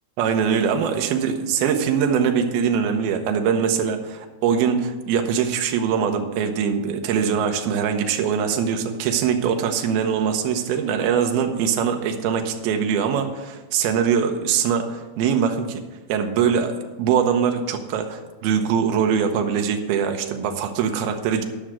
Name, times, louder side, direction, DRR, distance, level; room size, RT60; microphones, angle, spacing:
voice 1, 0.2-15.8 16.1-21.4, right 7 dB, 75° right, 5 dB, 2.5 m, -22 dB
12.0 x 6.3 x 6.2 m, 1.2 s
omnidirectional pair, 5.1 m